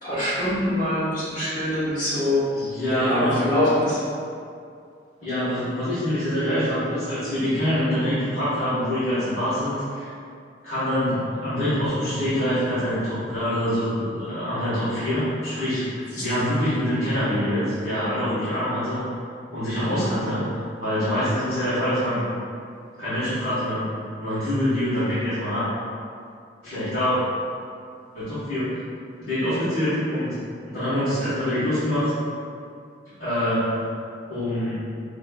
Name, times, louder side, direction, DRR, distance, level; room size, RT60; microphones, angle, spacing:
voice 1, 0.0-2.4 2.9-4.0 16.1-16.2 19.8-20.0, left 1 dB, 45° left, -10 dB, 1.3 m, -24 dB
voice 2, 2.5-3.4 5.2-10.1 10.6-19.1 19.5-20.4 20.8-22.2 23.0-23.9 24.2-25.7 26.6-27.1 28.1-28.7 29.2-30.3 30.6-32.1 33.1-33.8 34.3-34.8, equal, 70° left, -15 dB, 1.4 m, -25 dB
5.2 x 2.9 x 2.3 m, 2.3 s
head